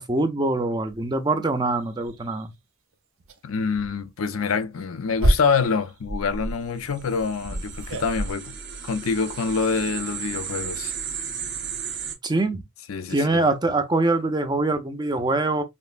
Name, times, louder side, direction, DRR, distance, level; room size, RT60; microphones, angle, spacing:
voice 1, 0.0-2.5 12.2-12.6 13.1-15.6, right 2 dB, 20° right, 0.5 m, -23 dB
sound 1, 0.9-1.0 1.5-1.6 2.0-2.4 3.2-3.4 3.7-3.9 4.6-8.3, right 1 dB, 70° right, 0.7 m, -28 dB
voice 2, 3.4-8.6 8.8-10.9 12.9-13.4, left 5 dB, 85° left, 0.5 m, -26 dB
sound 2, 6.8-12.1, right 7 dB, 55° right, 1.1 m, -34 dB
5.3 x 2.0 x 2.4 m
head